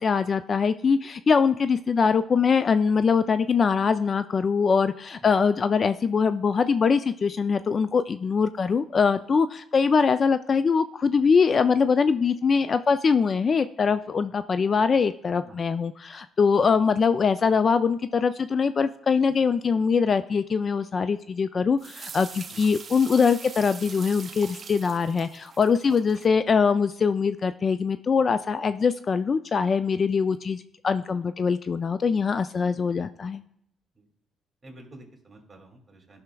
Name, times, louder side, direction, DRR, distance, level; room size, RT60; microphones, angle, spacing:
voice 1, 0.0-33.4, left 5 dB, 45° left, 12 dB, 0.3 m, -23 dB
sound 1, 21.8-26.3, right 6 dB, 45° right, 0.5 m, -42 dB
voice 2, 34.6-36.2, right 1 dB, 25° right, 1 dB, 2.2 m, -49 dB
14.5 x 5.7 x 2.3 m, 0.75 s
cardioid pair, 90°, 0 cm